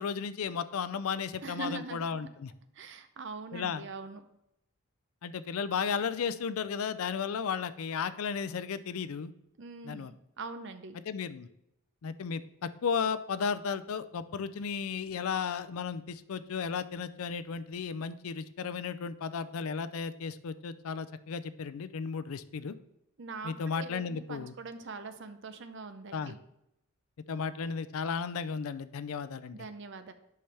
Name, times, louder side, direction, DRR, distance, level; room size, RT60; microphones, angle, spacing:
voice 1, 0.0-2.5 3.5-3.8 5.2-9.3 9.8-10.1 11.1-11.5 12.0-22.8 23.4-24.5 26.1-26.3 27.3-29.6, left 6 dB, 70° left, 14 dB, 0.4 m, -34 dB
voice 2, 1.4-2.3 2.7-4.2 9.6-11.0 23.2-26.4 29.5-30.1, right 4 dB, 55° right, 10 dB, 0.6 m, -42 dB
8.5 x 5.7 x 3.4 m, 0.81 s
head